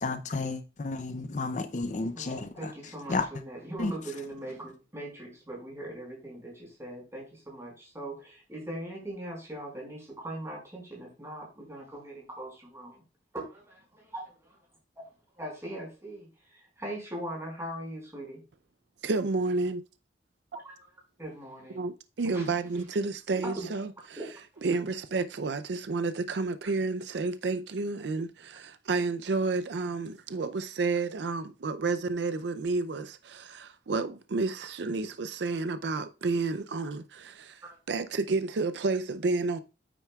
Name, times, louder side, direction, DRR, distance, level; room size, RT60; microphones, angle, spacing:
voice 1, 0.0-2.7 3.1-3.3 3.8-3.9, left 3 dB, 40° left, 0.5 m, -32 dB
voice 2, 2.1-13.0 13.3-13.8 14.1-14.5 15.3-18.4 20.5-20.7 21.2-21.8 22.2-22.9 23.4-23.7 24.2-24.8 37.7-37.8, right 1 dB, 15° right, 5.0 m, -40 dB
voice 3, 19.0-19.8 21.7-24.2 24.6-39.6, right 3 dB, 75° right, 0.5 m, -30 dB
9.0 x 9.0 x 2.3 m
head